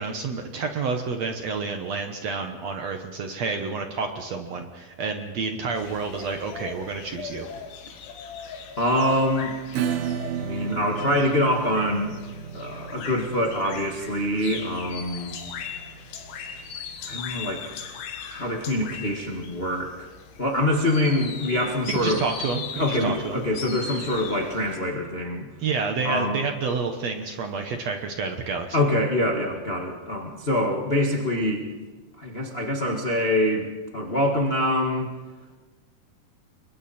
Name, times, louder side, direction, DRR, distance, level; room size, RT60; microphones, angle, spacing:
voice 1, 0.0-7.5 21.9-23.4 25.6-28.8, right 4 dB, 60° right, 5 dB, 2.0 m, -29 dB
sound 1, 5.7-24.8, left 7 dB, 75° left, 3.6 m, -39 dB
voice 2, 8.8-9.5 10.4-12.1 12.5-15.3 17.1-17.7 18.3-20.1 20.4-22.2 22.8-25.5 26.0-26.4 28.7-31.7 32.2-35.1, left 1 dB, 35° left, 0 dB, 0.9 m, -25 dB
Acoustic guitar / Strum, 9.7-16.9, right 9 dB, 90° right, 2.9 m, -34 dB
30.0 x 23.5 x 4.4 m, 1.3 s
omnidirectional pair, 4.3 m